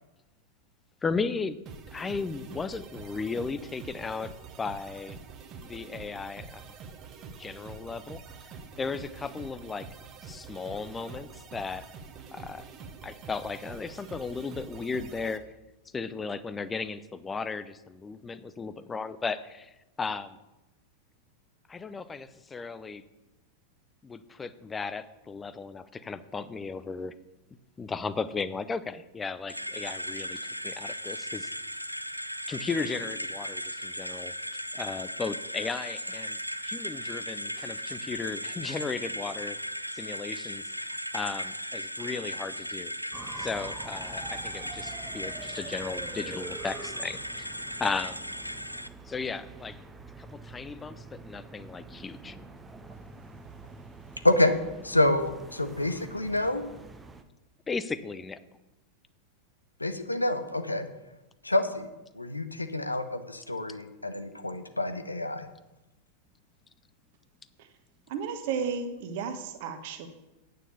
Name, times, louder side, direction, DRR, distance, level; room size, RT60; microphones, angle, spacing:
voice 1, 1.0-1.6 1.9-5.2 5.6-6.6 7.4-8.5 8.8-9.9 10.2-11.8 12.3-12.7 13.0-15.5 15.9-20.4 21.7-23.0 24.0-27.1 27.8-31.5 32.5-34.3 34.7-36.4 36.6-39.6 39.9-42.9 43.4-47.5 47.8-48.2 49.1-49.8 50.2-52.4 57.7-58.4, left 4 dB, 15° left, 15 dB, 0.5 m, -35 dB
sound 1, 1.7-15.4, right 5 dB, 30° right, 1.0 m, -46 dB
sound 2, 29.5-48.9, equal, 90° right, 0.4 m, -37 dB
sound 3, 43.1-57.2, right 3 dB, 15° right, 0.8 m, -46 dB
voice 2, 54.8-56.6 59.8-60.9 61.4-61.9 62.1-65.5, left 1 dB, 85° left, 9 dB, 0.8 m, -27 dB
voice 3, 68.1-70.1, right 6 dB, 50° right, 7 dB, 1.2 m, -33 dB
9.0 x 6.7 x 7.1 m, 1.0 s
figure-of-eight pair, 90°, 0 cm